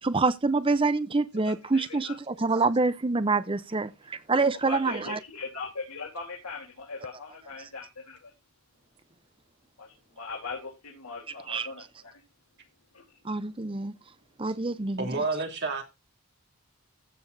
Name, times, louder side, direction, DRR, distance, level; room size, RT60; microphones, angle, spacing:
voice 1, 0.0-5.2 7.6-7.7 11.5-11.9 13.2-13.9 14.4-15.1, right 3 dB, 25° right, 0.6 m, -26 dB
voice 2, 1.4-2.2 4.6-8.3 9.8-12.2 12.9-13.2, left 4 dB, 80° left, 3.5 m, -40 dB
voice 3, 15.0-15.8, right 3 dB, 50° right, 3.1 m, -29 dB
15.0 x 7.9 x 2.7 m
head